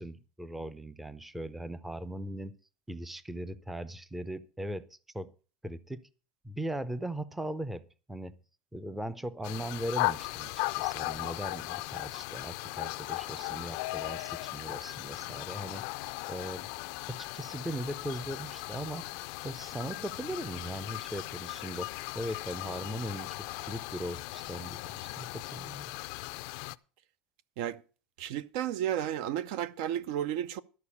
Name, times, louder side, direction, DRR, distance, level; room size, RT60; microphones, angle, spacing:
voice 1, 0.0-2.5 2.9-5.3 5.6-6.1 6.4-8.4 8.7-15.8 16.3-16.7 17.1-19.1 19.4-23.4 23.6-25.9, right 1 dB, 5° right, 0.5 m, -39 dB
sound 1, 9.4-26.8, left 22 dB, 65° left, 0.4 m, -37 dB
voice 2, 28.2-30.6, right 11 dB, 65° right, 0.6 m, -32 dB
12.5 x 4.8 x 8.3 m
supercardioid pair, 150°, 4 cm